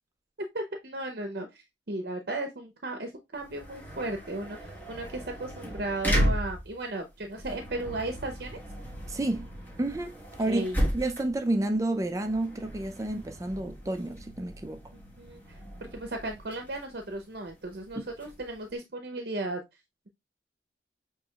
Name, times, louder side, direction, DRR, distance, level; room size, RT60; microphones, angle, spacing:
voice 1, 0.5-8.6 10.5-10.8 15.2-15.6 15.9-19.6, right 2 dB, 60° right, 0.7 m, -35 dB
sound 1, 3.4-18.7, equal, 10° left, 1.3 m, -35 dB
voice 2, 9.1-9.5 9.8-10.7 10.9-14.8 18.0-18.1, right 2 dB, 20° right, 0.4 m, -30 dB
6.1 x 3.0 x 2.3 m
head